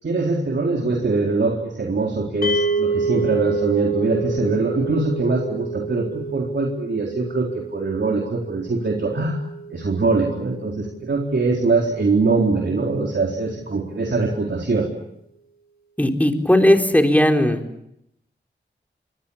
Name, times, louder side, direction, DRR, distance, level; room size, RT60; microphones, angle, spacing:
voice 1, 0.0-9.4 9.7-14.9, right 3 dB, 70° right, 0 dB, 4.0 m, -22 dB
sound 1, 2.4-12.7, right 3 dB, 55° left, 4.5 m, -29 dB
voice 2, 16.0-17.6, left 1 dB, 10° left, 3 dB, 4.1 m, -16 dB
28.5 x 26.0 x 7.2 m, 0.80 s
wide cardioid pair, 75°, 19 cm